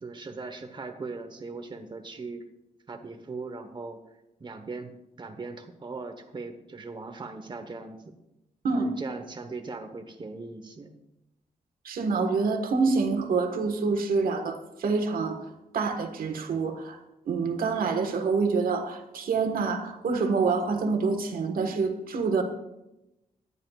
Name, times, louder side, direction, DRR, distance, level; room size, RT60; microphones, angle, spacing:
voice 1, 0.0-2.4 2.9-4.0 4.4-8.1 8.7-11.0, right 3 dB, 35° right, 5 dB, 1.1 m, -39 dB
voice 2, 11.8-15.4 15.7-17.0 17.3-22.4, right 4 dB, 85° right, 5 dB, 1.5 m, -26 dB
18.0 x 11.5 x 2.4 m, 0.91 s
wide cardioid pair, 120°, 15 cm